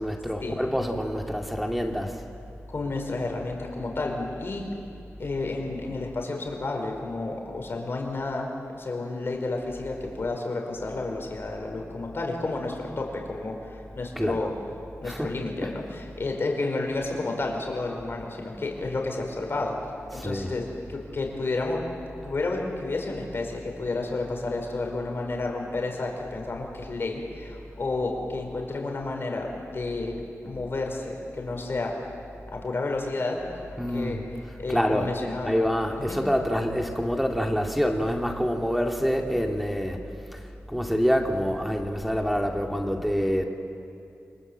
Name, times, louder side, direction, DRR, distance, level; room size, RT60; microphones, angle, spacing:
voice 1, 0.0-2.2 14.2-14.4 15.0-15.7 20.1-20.6 33.8-40.0 40.3-43.4, equal, ahead, 3 dB, 2.3 m, -27 dB
voice 2, 2.7-4.6 5.2-8.5 8.8-14.5 15.0-19.7 20.1-20.6 20.9-21.8 22.2-29.5 29.7-30.2 30.4-31.9 32.5-34.2 34.6-35.7 36.0-36.2, left 3 dB, 50° left, 1 dB, 4.7 m, -31 dB
29.0 x 24.0 x 7.9 m, 2.6 s
wide cardioid pair, 145°, 5 cm